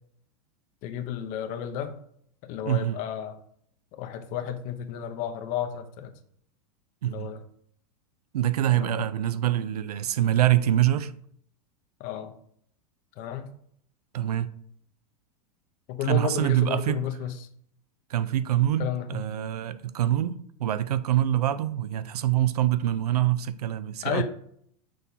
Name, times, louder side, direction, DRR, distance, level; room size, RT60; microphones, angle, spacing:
voice 1, 0.8-2.0 2.4-3.4 3.9-6.1 7.0-7.4 8.8-9.0 12.0-12.4 13.2-13.5 15.9-17.5 18.8-19.2 24.0-24.2, left 9 dB, 45° left, 0.8 m, -32 dB
voice 2, 2.7-3.0 7.0-7.3 8.3-11.1 14.1-14.5 16.0-17.0 18.1-24.2, right 12 dB, 90° right, 0.4 m, -25 dB
6.3 x 5.5 x 2.7 m
hypercardioid pair, 120°, 20 cm